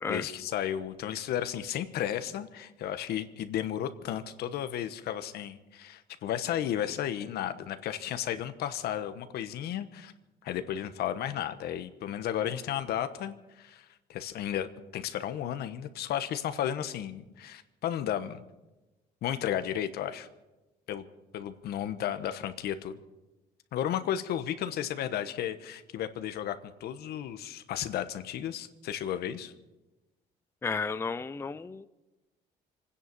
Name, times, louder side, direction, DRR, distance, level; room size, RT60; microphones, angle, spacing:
voice 1, 0.1-10.1 10.4-14.7 14.9-18.4 19.2-20.3 20.9-21.0 21.3-23.0 23.7-29.5, left 10 dB, 70° left, 10 dB, 1.2 m, -33 dB
voice 2, 30.6-31.9, left 5 dB, 15° left, 12 dB, 0.5 m, -33 dB
25.5 x 10.0 x 5.4 m, 1.1 s
cardioid pair, 110°, 17 cm